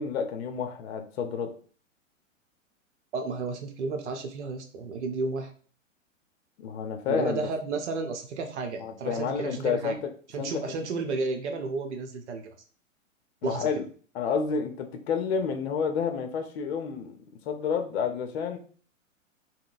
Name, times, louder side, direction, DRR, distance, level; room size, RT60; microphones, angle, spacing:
voice 1, 0.0-1.5 6.6-7.5 8.8-10.1 10.4-10.5 13.4-13.9 14.1-17.2 17.5-18.6, left 6 dB, 55° left, 6 dB, 0.7 m, -30 dB
voice 2, 3.1-5.5 7.1-10.0 10.3-12.5 13.4-13.7, right 4 dB, 60° right, 5 dB, 0.8 m, -32 dB
3.7 x 2.1 x 2.5 m, 0.42 s
figure-of-eight pair, 110°, 40 cm